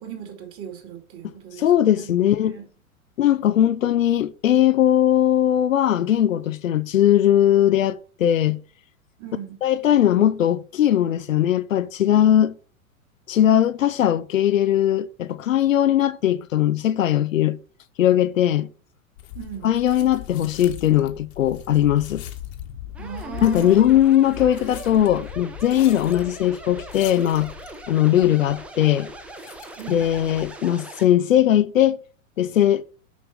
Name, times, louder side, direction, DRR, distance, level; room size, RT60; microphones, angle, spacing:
voice 1, 0.0-2.1 2.4-2.7 9.2-9.6 19.3-19.8 23.0-23.9 29.8-30.0, right 8 dB, 30° right, 2.7 m, -38 dB
voice 2, 1.6-2.6 3.2-8.6 9.6-12.5 13.3-17.6 18.0-18.7 19.6-22.2 23.4-27.5 27.9-29.1 29.9-32.0 32.4-32.8, left 11 dB, 65° left, 0.6 m, -19 dB
sound 1, 19.2-30.5, left 12 dB, 50° left, 1.4 m, -40 dB
sound 2, 22.9-31.1, right 2 dB, 5° right, 0.4 m, -40 dB
7.1 x 5.7 x 4.6 m
figure-of-eight pair, 95°, 42 cm